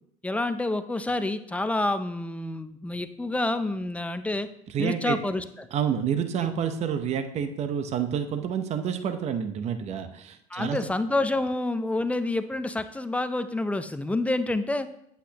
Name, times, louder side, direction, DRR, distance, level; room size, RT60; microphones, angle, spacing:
voice 1, 0.2-4.5 4.8-5.7 6.4-6.5 10.5-14.9, left 2 dB, 10° left, 10 dB, 0.6 m, -28 dB
voice 2, 4.7-5.2 5.7-10.8, right 8 dB, 45° right, 8 dB, 0.8 m, -28 dB
8.2 x 8.0 x 2.9 m, 0.74 s
supercardioid pair, 95°, 16 cm